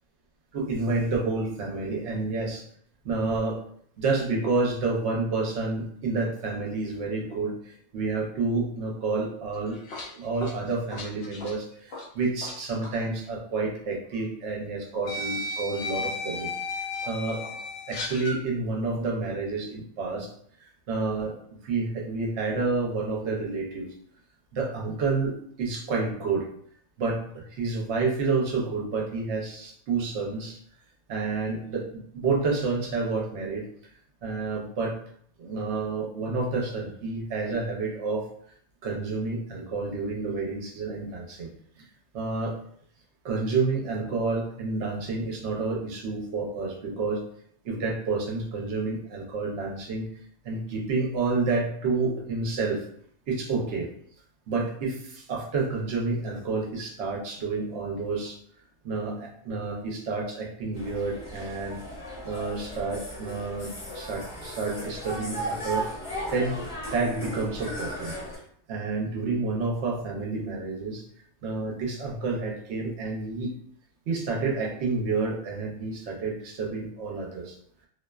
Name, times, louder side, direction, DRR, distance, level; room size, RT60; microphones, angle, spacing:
voice 1, 0.5-2.6 3.0-3.6 4.0-9.8 10.2-16.5 17.1-17.5 17.9-20.3 20.9-21.4 21.6-23.9 24.5-26.5 27.0-30.6 31.1-33.7 34.2-35.0 35.4-38.3 38.8-41.5 42.1-42.6 43.2-47.2 47.6-50.1 50.4-52.8 53.3-53.9 54.5-58.4 58.8-61.8 62.2-65.9 66.3-66.6 66.9-68.1 68.7-71.0 71.4-73.5 74.1-77.5, right 3 dB, 65° right, -1 dB, 0.9 m, -29 dB
sound 1, 9.5-12.6 12.8-13.0 14.1-14.2 15.1-18.4, left 2 dB, 65° left, 0.7 m, -35 dB
sound 2, 60.7-68.4, right 1 dB, 30° left, 0.8 m, -36 dB
2.6 x 2.1 x 2.2 m, 0.62 s
omnidirectional pair, 1.3 m